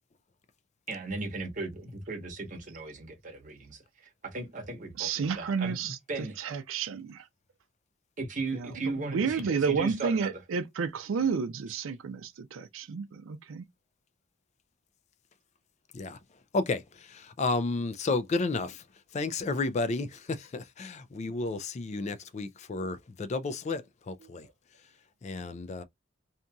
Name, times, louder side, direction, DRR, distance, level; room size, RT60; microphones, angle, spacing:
voice 1, 0.9-6.4 8.2-10.3 11.7-11.8, right 3 dB, 40° right, 1.0 m, -37 dB
voice 2, 5.0-6.0 6.4-7.2 8.5-8.7 9.0-13.6, right 6 dB, 90° right, 0.4 m, -31 dB
voice 3, 16.5-18.8 19.1-24.5 25.2-25.8, left 3 dB, 35° left, 0.3 m, -32 dB
2.8 x 2.6 x 2.2 m
head